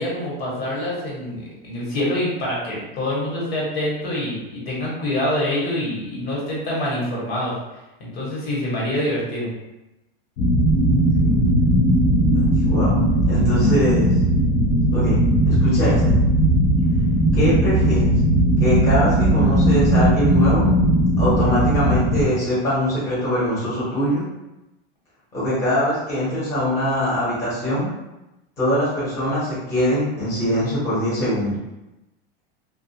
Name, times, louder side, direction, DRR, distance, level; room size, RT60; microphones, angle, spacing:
voice 1, 0.0-7.5 8.0-9.5, left 1 dB, 75° left, -5 dB, 1.3 m, -25 dB
sound 1, 10.4-22.2, right 1 dB, 35° left, 0.4 m, -18 dB
voice 2, 12.4-14.1 14.9-15.2 15.5-16.1 17.3-18.1 18.6-20.6 21.2-24.2 25.3-27.9 28.6-31.5, equal, 10° left, -11 dB, 0.9 m, -23 dB
2.3 x 2.3 x 2.7 m, 0.98 s
supercardioid pair, 170°, 30 cm